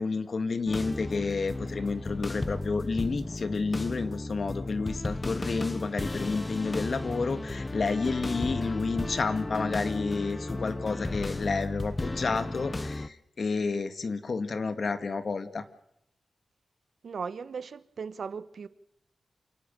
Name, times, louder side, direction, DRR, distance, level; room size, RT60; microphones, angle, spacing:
voice 1, 0.0-15.6, left 4 dB, 55° left, 2.1 m, -30 dB
sound 1, 0.7-13.1, left 2 dB, 25° left, 0.9 m, -34 dB
voice 2, 17.0-18.7, right 5 dB, 70° right, 1.3 m, -37 dB
28.5 x 18.0 x 7.0 m
wide cardioid pair, 95°, 0 cm